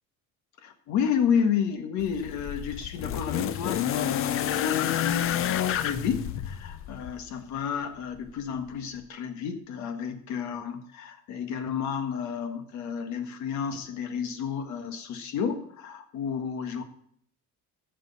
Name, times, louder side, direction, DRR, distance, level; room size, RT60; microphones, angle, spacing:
voice 1, 0.6-16.8, left 7 dB, 65° left, 7 dB, 1.6 m, -31 dB
sound 1, 2.0-7.2 8.3-8.4, left 10 dB, 45° left, 0.6 m, -29 dB
15.0 x 6.4 x 4.1 m, 0.64 s
cardioid pair, 140°, 31 cm